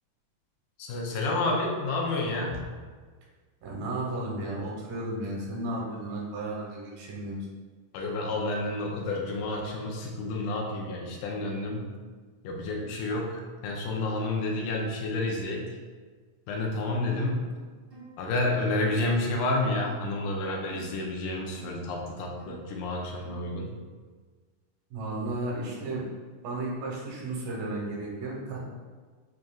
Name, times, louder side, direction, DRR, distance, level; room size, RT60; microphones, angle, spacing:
voice 1, 0.8-2.7 7.9-11.9 12.4-15.8 16.5-17.5 18.2-23.7, left 2 dB, 80° left, 0 dB, 2.1 m, -30 dB
voice 2, 3.6-7.5 24.9-26.0 26.4-28.6, right 2 dB, 85° right, -4 dB, 2.6 m, -34 dB
sound 1, 17.1-17.4 17.9-18.2 18.8-19.0 19.8-20.1 20.7-20.9 21.5-21.8 22.4-22.7 23.2-23.5, right 4 dB, 50° right, 1.5 m, -48 dB
7.3 x 2.5 x 2.3 m, 1.5 s
omnidirectional pair, 3.7 m